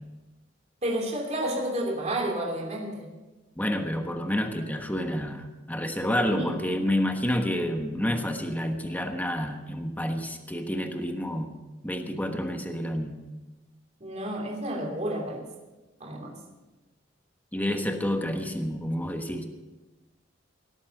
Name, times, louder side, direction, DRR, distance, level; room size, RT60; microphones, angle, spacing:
voice 1, 0.8-3.1 6.3-6.5 14.0-15.5 16.0-16.4, right 1 dB, 35° right, 0 dB, 3.0 m, -31 dB
voice 2, 3.5-11.5 11.8-13.1 17.5-19.5, equal, 10° left, 5 dB, 1.2 m, -29 dB
18.5 x 8.5 x 6.6 m, 1.1 s
head